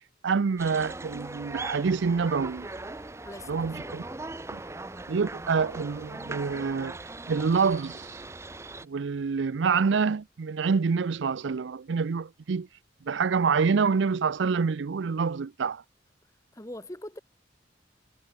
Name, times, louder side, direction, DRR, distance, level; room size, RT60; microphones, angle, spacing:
voice 1, 0.2-2.7 3.5-4.0 4.5-4.6 5.1-7.0 7.3-8.2 8.8-12.7 13.0-15.8, right 5 dB, 75° right, 0.5 m, -27 dB
sound 1, 0.6-8.8, right 2 dB, 15° right, 0.6 m, -40 dB
voice 2, 3.2-4.0 16.5-17.2, left 1 dB, 15° left, 2.3 m, -42 dB
head